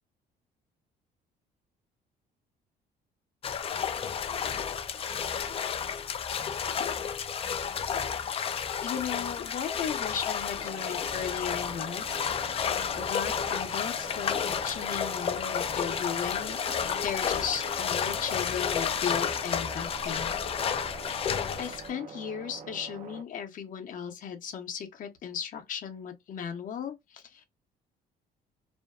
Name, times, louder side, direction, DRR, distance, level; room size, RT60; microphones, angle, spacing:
sound 1, 3.4-21.9, left 7 dB, 35° left, 0.4 m, -31 dB
voice 1, 8.8-16.6 16.9-20.3 21.1-27.4, left 7 dB, 50° left, 0.8 m, -36 dB
sound 2, 10.6-23.2, right 5 dB, 50° right, 0.5 m, -45 dB
2.6 x 2.2 x 2.3 m
cardioid pair, 110°, 17 cm